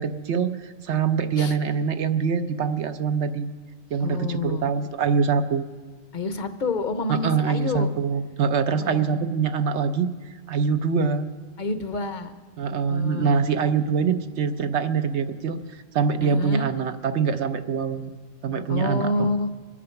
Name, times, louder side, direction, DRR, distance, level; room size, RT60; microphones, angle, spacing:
voice 1, 0.0-3.4 3.9-5.7 7.1-10.1 10.5-11.3 12.6-18.1 18.4-19.3, right 6 dB, 65° right, 9 dB, 1.0 m, -24 dB
voice 2, 4.0-4.7 6.1-7.9 8.7-9.3 11.6-12.3 12.9-13.5 16.2-16.7 18.7-19.5, left 2 dB, 45° left, 9 dB, 0.8 m, -28 dB
24.0 x 8.6 x 5.8 m, 1.4 s
omnidirectional pair, 1.3 m